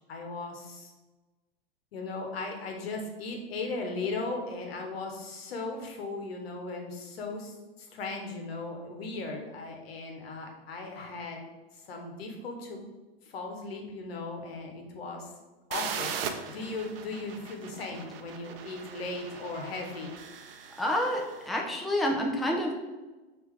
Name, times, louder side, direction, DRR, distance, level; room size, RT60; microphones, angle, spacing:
voice 1, 0.1-0.9 1.9-11.4 11.7-12.8 13.2-15.3 15.7-16.1 16.5-20.1, left 3 dB, 80° left, 2 dB, 1.0 m, -37 dB
sound 1, 15.7-21.4, right 7 dB, 70° right, 0.6 m, -39 dB
voice 2, 20.8-22.7, left 1 dB, ahead, 0 dB, 0.5 m, -28 dB
3.6 x 2.8 x 4.7 m, 1.2 s
hypercardioid pair, 105°, 30 cm